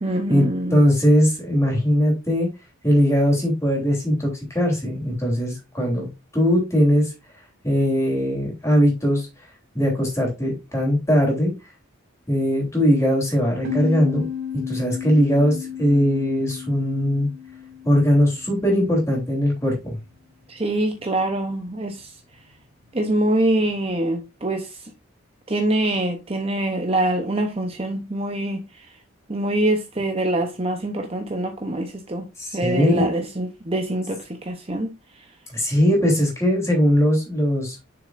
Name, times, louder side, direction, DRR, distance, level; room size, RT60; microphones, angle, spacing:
voice 1, 0.0-0.8 20.5-22.1 22.9-24.9 25.5-28.9 29.3-32.3 32.5-34.9, right 1 dB, 25° right, 0.8 m, -24 dB
voice 2, 0.7-2.5 2.8-7.1 7.6-9.3 9.7-11.5 12.3-14.2 14.7-17.3 17.8-19.7 32.4-33.1 35.5-37.8, equal, 15° left, 3.2 m, -20 dB
sound 1, 13.6-19.0, left 7 dB, 75° right, 3.4 m, -33 dB
6.9 x 6.6 x 2.5 m
head